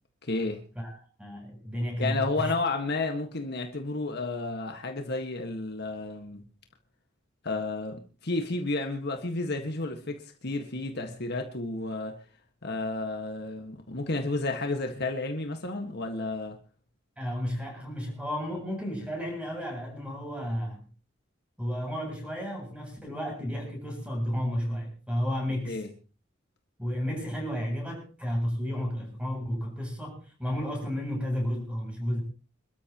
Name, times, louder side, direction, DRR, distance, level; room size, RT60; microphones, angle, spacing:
voice 1, 0.2-0.6 2.0-6.4 7.4-12.1 12.6-16.6 25.7-25.9, left 2 dB, 55° left, 4 dB, 1.7 m, -31 dB
voice 2, 1.2-2.5 17.2-20.8 21.6-25.8 26.8-32.2, equal, 5° right, 1 dB, 7.8 m, -32 dB
27.5 x 13.5 x 3.0 m, 0.35 s
head